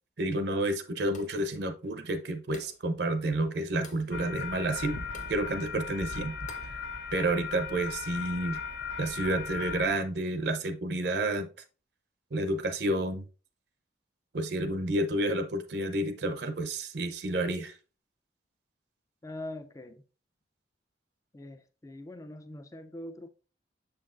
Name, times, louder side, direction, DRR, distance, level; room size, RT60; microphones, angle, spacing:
voice 1, 0.2-5.0 5.3-6.4 6.7-6.8 7.1-8.6 9.0-11.5 12.3-13.3 14.3-17.7, right 1 dB, 60° right, 0.6 m, -30 dB
Pick Hitting Rock, 1.1-1.5 2.5-2.9 3.8-4.1 5.1-5.4 6.5-6.8, left 4 dB, 40° left, 0.9 m, -50 dB
sound 1, 4.1-9.9, left 6 dB, 80° left, 1.1 m, -37 dB
voice 2, 19.2-20.0 21.3-23.3, left 1 dB, 15° left, 0.4 m, -43 dB
7.0 x 5.7 x 2.5 m
head